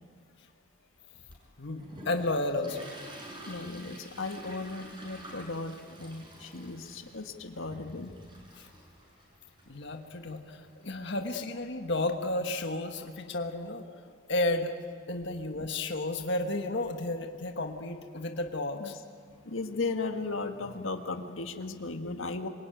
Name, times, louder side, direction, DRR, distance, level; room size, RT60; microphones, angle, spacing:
Toilet flush, 1.3-11.5, right 1 dB, 25° right, 6.7 m, -49 dB
voice 1, 1.6-2.9 8.5-8.7 9.7-13.9 14.3-14.8 15.1-18.9, left 2 dB, 60° left, 4 dB, 1.6 m, -32 dB
voice 2, 3.5-8.1 11.1-11.2 18.8-18.9 19.4-22.5, left 3 dB, 85° left, 5 dB, 1.7 m, -36 dB
26.0 x 23.0 x 9.1 m, 2.1 s
head